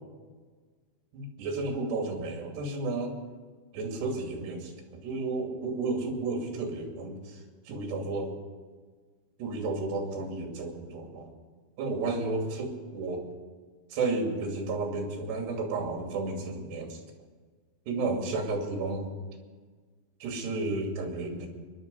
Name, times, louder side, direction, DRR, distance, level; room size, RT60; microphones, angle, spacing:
voice 1, 1.1-3.2 3.7-8.4 9.4-11.3 11.8-13.3 13.9-17.0 17.9-19.1 20.2-21.5, right 3 dB, 60° right, 2 dB, 4.5 m, -32 dB
22.5 x 11.0 x 5.5 m, 1.5 s
omnidirectional pair, 5.6 m